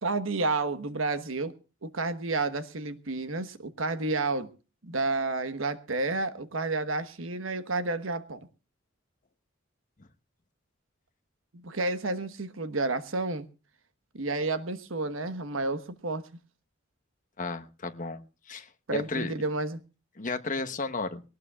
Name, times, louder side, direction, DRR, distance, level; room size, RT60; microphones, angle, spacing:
voice 1, 0.0-1.5 1.8-4.5 4.8-8.5 11.5-13.5 14.1-16.3 18.9-19.8, right 3 dB, 85° right, 1.3 m, -30 dB
voice 2, 17.4-19.3 20.2-21.2, left 3 dB, 40° left, 1.1 m, -34 dB
21.5 x 18.5 x 2.4 m
head